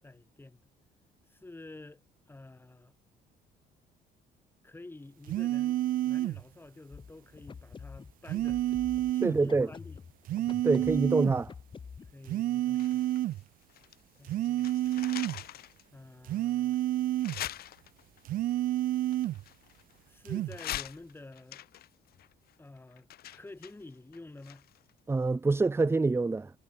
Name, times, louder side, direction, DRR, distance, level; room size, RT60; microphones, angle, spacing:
voice 1, 0.0-0.7 1.3-2.0 2.3-2.9 4.6-5.8 6.0-8.8 9.1-10.0 12.1-13.0 14.2-14.9 15.9-16.8 20.1-21.6 22.6-24.7, left 2 dB, 15° left, 6.8 m, -49 dB
sound 1, 5.3-6.4 8.3-9.4 10.3-11.4 12.3-13.4 14.2-15.4 16.3-17.4 18.2-19.4 20.2-20.6, right 14 dB, 55° right, 0.4 m, -29 dB
sound 2, 6.9-12.1, left 5 dB, 30° left, 1.4 m, -48 dB
voice 2, 9.2-9.7 10.6-11.5 25.1-26.5, right 3 dB, 15° right, 0.8 m, -26 dB
sound 3, 12.7-14.0 14.3-15.8 16.3-16.4 17.2-18.2 19.1-20.1 20.5-24.9 25.2-25.3, left 13 dB, 65° left, 2.0 m, -43 dB
cardioid pair, 110°, 17 cm